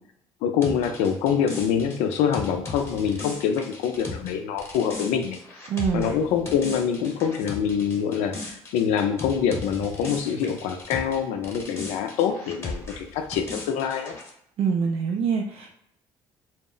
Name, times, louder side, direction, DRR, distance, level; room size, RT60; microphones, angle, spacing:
voice 1, 0.4-5.4 5.9-14.1, left 7 dB, 80° left, 5 dB, 0.5 m, -25 dB
sound 1, 0.6-11.2 11.4-14.3, left 3 dB, 25° left, 0.9 m, -37 dB
voice 2, 5.7-6.1 14.6-15.7, right 6 dB, 60° right, 1 dB, 0.5 m, -25 dB
2.1 x 2.1 x 3.7 m, 0.74 s
supercardioid pair, 80°, 12 cm